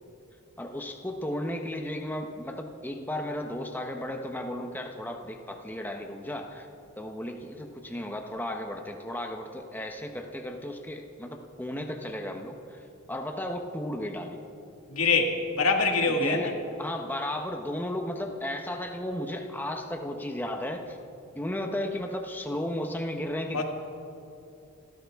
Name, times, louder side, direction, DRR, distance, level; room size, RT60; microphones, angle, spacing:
voice 1, 0.6-6.7 7.0-14.4 16.2-16.5 16.8-21.0 21.4-23.6, left 1 dB, 10° left, 3 dB, 0.9 m, -34 dB
voice 2, 14.9-16.5 23.5-23.6, left 4 dB, 75° left, 2 dB, 1.9 m, -24 dB
28.5 x 13.5 x 3.6 m, 2.7 s
head